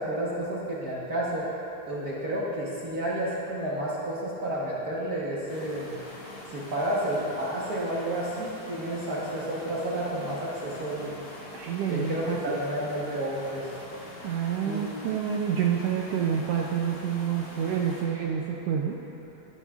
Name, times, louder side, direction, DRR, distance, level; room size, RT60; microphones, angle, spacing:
voice 1, 0.0-1.4 1.9-6.0 6.5-11.2 11.9-13.7 14.6-15.0, right 1 dB, 60° right, -7 dB, 0.9 m, -31 dB
sound 1, 5.5-18.0, left 1 dB, 45° left, 2.9 m, -44 dB
voice 2, 11.5-12.6 14.2-19.0, right 8 dB, 85° right, 0 dB, 1.4 m, -28 dB
18.5 x 9.6 x 2.4 m, 3.0 s
omnidirectional pair, 3.4 m